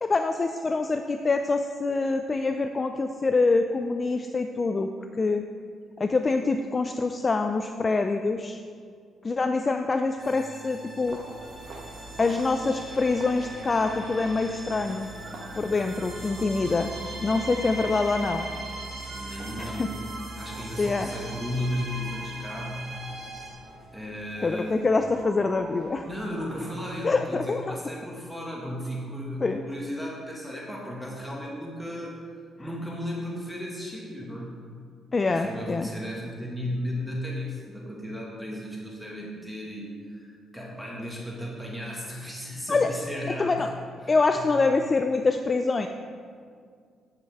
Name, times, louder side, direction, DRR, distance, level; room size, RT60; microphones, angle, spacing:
voice 1, 0.0-4.9 5.2-5.4 6.0-8.6 9.2-11.2 12.2-15.1 15.5-16.9 17.2-18.5 19.6-19.9 20.8-21.1 24.4-26.1 27.0-27.8 29.4-29.6 35.1-35.9 42.7-42.9 43.4-43.7 44.1-45.9, left 3 dB, 30° left, 6 dB, 0.4 m, -25 dB
sound 1, 10.2-23.5, right 1 dB, 30° right, 2.3 m, -39 dB
sound 2, 11.0-26.8, right 2 dB, 60° right, 1.3 m, -46 dB
voice 2, 19.1-20.0 20.3-23.0 23.9-24.9 26.0-32.2 32.6-34.6 35.3-43.7 44.0-44.6, equal, ahead, -3 dB, 1.7 m, -35 dB
11.0 x 7.7 x 3.5 m, 2.1 s
cardioid pair, 90°, 0 cm